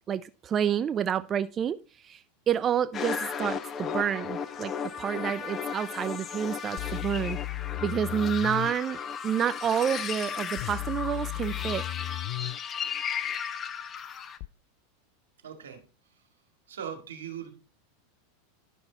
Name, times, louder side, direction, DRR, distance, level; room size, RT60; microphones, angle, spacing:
voice 1, 0.1-2.2 2.5-4.7 5.0-7.4 7.8-9.0 9.2-11.8, right 8 dB, 30° right, 0.4 m, -29 dB
sound 1, 2.9-14.4, left 7 dB, 30° left, 0.8 m, -35 dB
sound 2, 6.8-8.7 10.6-12.6 14.4-14.5, left 18 dB, 55° left, 0.3 m, -35 dB
voice 2, 15.4-15.8 16.7-17.5, right 8 dB, 85° right, 2.0 m, -39 dB
11.0 x 5.6 x 4.1 m
hypercardioid pair, 100°, 0 cm